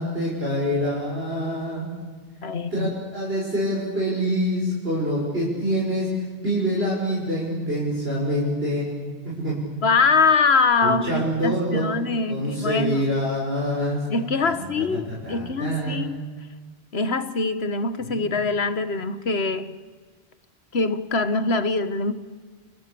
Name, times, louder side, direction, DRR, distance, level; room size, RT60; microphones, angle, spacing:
voice 1, 0.0-1.9 2.7-8.9 9.2-9.6 10.8-12.0 12.3-14.0 14.5-16.1 18.0-18.3, equal, 65° right, -5 dB, 6.9 m, -26 dB
voice 2, 2.4-2.9 9.8-13.0 14.1-16.2 16.9-19.8 20.7-22.1, left 4 dB, 75° left, 12 dB, 1.6 m, -23 dB
29.0 x 28.5 x 7.0 m, 1.4 s
omnidirectional pair, 1.1 m